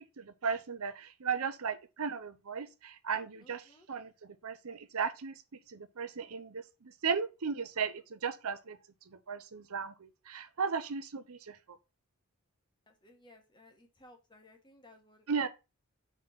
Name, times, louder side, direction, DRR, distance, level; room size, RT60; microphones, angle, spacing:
voice 1, 0.2-5.3 5.7-8.8 9.1-11.6 15.3-15.5, right 6 dB, 70° right, 0.7 m, -36 dB
voice 2, 3.4-3.9 12.9-15.3, left 1 dB, 20° left, 1.4 m, -59 dB
4.6 x 4.3 x 5.7 m
head